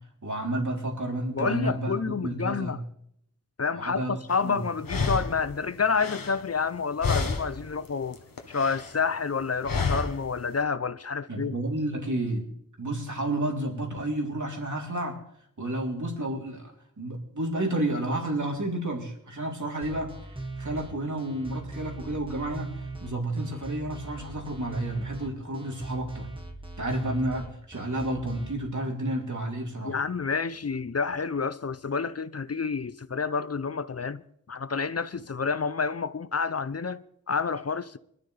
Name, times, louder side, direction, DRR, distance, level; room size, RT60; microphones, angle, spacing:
voice 1, 0.2-2.8 3.7-4.6 11.3-12.5 12.8-15.2 15.6-26.3 26.8-30.0, right 1 dB, 60° right, 3.4 m, -31 dB
voice 2, 1.3-2.8 3.6-8.2 8.5-11.6 29.8-34.2 34.5-38.0, left 5 dB, 45° left, 0.6 m, -29 dB
sound 1, 4.3-4.4 4.8-6.8 7.0-7.7 8.0-9.0 9.6-10.3, left 4 dB, 75° left, 1.3 m, -30 dB
sound 2, 19.8-28.5, right 2 dB, 15° right, 1.6 m, -39 dB
24.0 x 12.0 x 3.4 m
wide cardioid pair, 45°, 34 cm